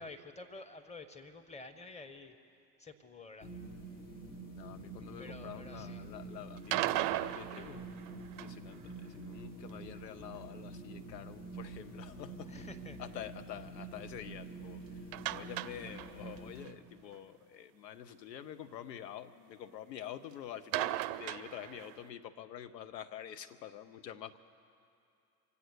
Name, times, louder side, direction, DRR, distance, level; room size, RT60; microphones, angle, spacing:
voice 1, 0.0-2.4 2.8-3.5 5.2-6.0 12.5-13.0, left 3 dB, 15° left, 8 dB, 1.2 m, -49 dB
sound 1, 3.4-16.6, right 3 dB, 60° left, 3.6 m, -47 dB
voice 2, 4.5-8.1 8.3-12.7 13.0-24.4, left 10 dB, 80° left, 11 dB, 0.9 m, -47 dB
sound 2, 6.6-8.7 15.1-16.4 16.7-16.8 17.1-17.2 20.7-22.1, right 16 dB, 55° right, 0.6 m, -36 dB
24.5 x 8.3 x 6.6 m, 2.7 s
hypercardioid pair, 75°, 49 cm